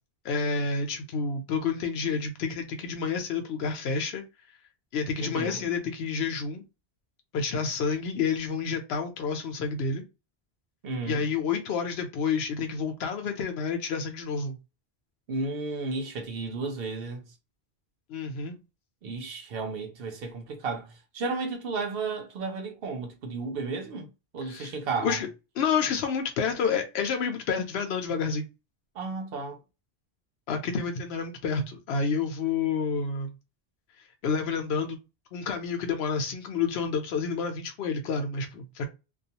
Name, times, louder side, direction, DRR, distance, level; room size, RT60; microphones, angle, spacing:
voice 1, 0.2-4.2 4.9-6.6 7.3-10.0 11.0-14.6 18.1-18.6 24.4-24.7 25.0-25.3 25.6-28.5 30.5-33.3 34.2-35.0 35.3-38.8, left 5 dB, 80° left, 0.9 m, -29 dB
voice 2, 5.2-5.7 10.8-11.2 15.3-17.3 19.0-24.1 24.3-25.2 28.9-29.6, right 3 dB, 70° right, 0.9 m, -33 dB
2.4 x 2.3 x 2.7 m
omnidirectional pair, 1.0 m